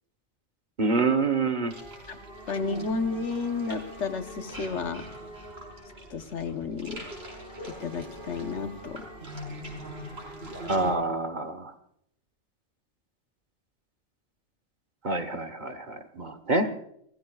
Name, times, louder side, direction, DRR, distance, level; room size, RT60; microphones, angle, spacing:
voice 1, 0.8-1.7 10.7-11.7 15.0-16.7, right 3 dB, 45° right, 9 dB, 1.3 m, -27 dB
sound 1, 1.7-10.9, right 1 dB, 60° right, 5.2 m, -42 dB
voice 2, 2.5-5.0 6.1-7.0 7.8-9.0, left 4 dB, 80° left, 7 dB, 1.4 m, -32 dB
29.5 x 15.5 x 2.4 m, 0.71 s
omnidirectional pair, 1.2 m